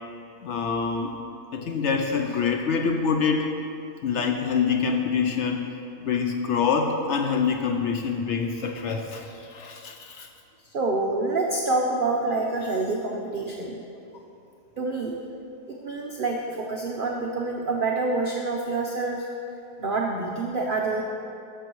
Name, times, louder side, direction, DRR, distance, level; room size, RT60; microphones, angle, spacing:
voice 1, 0.4-1.2 1.5-3.5 4.0-5.7 6.0-10.3, left 5 dB, 75° left, 4 dB, 0.6 m, -25 dB
voice 2, 10.7-13.8 14.8-15.2 15.7-19.2 19.8-21.0, right 3 dB, 70° right, 0 dB, 0.5 m, -27 dB
12.5 x 6.8 x 3.0 m, 2.6 s
omnidirectional pair, 1.7 m